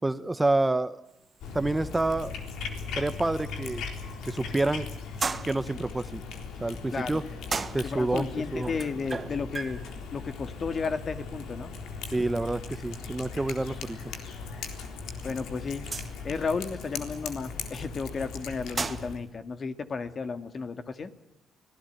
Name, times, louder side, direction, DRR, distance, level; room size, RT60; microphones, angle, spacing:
voice 1, 0.0-1.0 1.5-2.3 3.0-3.8 4.2-4.9 5.4-6.2 6.6-7.3 7.7-8.3 8.5-8.7 12.1-14.2, right 2 dB, 15° right, 13 dB, 1.0 m, -28 dB
sound 1, 1.1-19.3, right 4 dB, 30° right, 1.3 m, -41 dB
Cat, 1.4-19.2, left 5 dB, 85° left, 3.8 m, -39 dB
voice 2, 7.8-9.8 10.1-11.7 15.2-15.9 16.2-21.1, left 4 dB, 45° left, 9 dB, 2.1 m, -33 dB
25.5 x 18.5 x 9.3 m, 0.85 s
cardioid pair, 90°, 0 cm